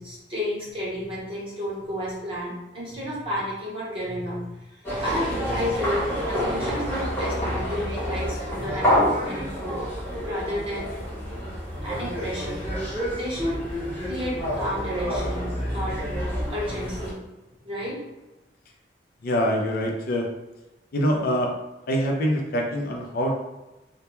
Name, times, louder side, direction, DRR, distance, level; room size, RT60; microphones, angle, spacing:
voice 1, 0.0-9.8 10.2-10.9 11.8-12.6 13.1-13.6 14.0-16.0 16.4-17.2 17.6-18.0, equal, 30° right, -7 dB, 0.9 m, -31 dB
sound 1, 4.8-17.1, equal, 15° left, 0.8 m, -28 dB
voice 2, 19.2-20.3 20.9-21.5 21.9-23.3, equal, 55° left, 1 dB, 0.4 m, -24 dB
2.1 x 2.1 x 2.9 m, 1.0 s
head